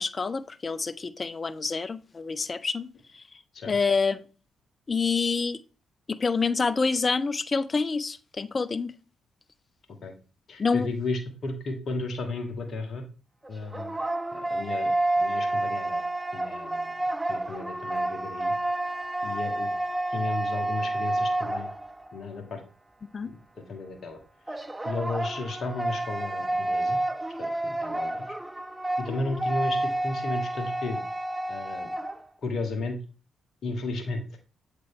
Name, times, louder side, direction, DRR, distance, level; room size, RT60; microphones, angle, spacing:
voice 1, 0.0-2.9 3.1-3.2 3.6-4.2 4.9-5.6 6.1-8.9 10.6-10.9 23.1-23.3, left 4 dB, 40° left, 14 dB, 0.5 m, -27 dB
voice 2, 10.5-13.0 13.5-14.0 14.3-16.0 16.3-18.5 19.2-19.7 20.1-21.7 22.1-22.6 23.2-23.4 23.7-24.2 24.5-24.6 24.8-27.0 27.4-28.3 29.0-31.0 31.5-31.9 32.4-33.0 33.6-34.2, left 3 dB, 55° left, 5 dB, 1.4 m, -34 dB
sound 1, 13.4-22.2 24.5-32.2, right 1 dB, 15° right, 0.5 m, -29 dB
7.8 x 3.6 x 3.7 m, 0.35 s
hypercardioid pair, 40°, 0 cm